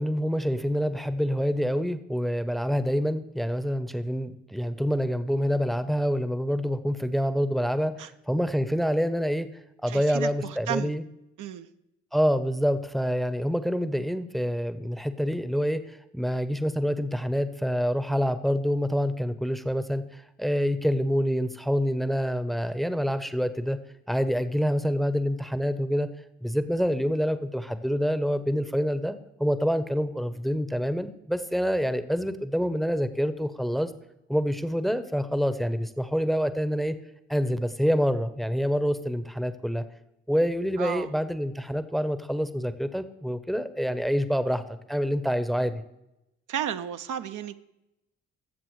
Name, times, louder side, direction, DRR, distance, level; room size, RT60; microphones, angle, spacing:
voice 1, 0.0-9.5 9.8-11.0 12.1-23.8 24.1-26.1 26.4-29.1 29.4-33.9 34.3-37.0 37.3-39.8 40.3-45.8, equal, ahead, 12 dB, 0.8 m, -27 dB
voice 2, 9.9-10.9 11.4-11.7 40.8-41.1 46.5-47.6, right 10 dB, 55° right, 9 dB, 0.7 m, -33 dB
17.5 x 7.7 x 3.2 m, 0.89 s
hypercardioid pair, 45°, 36 cm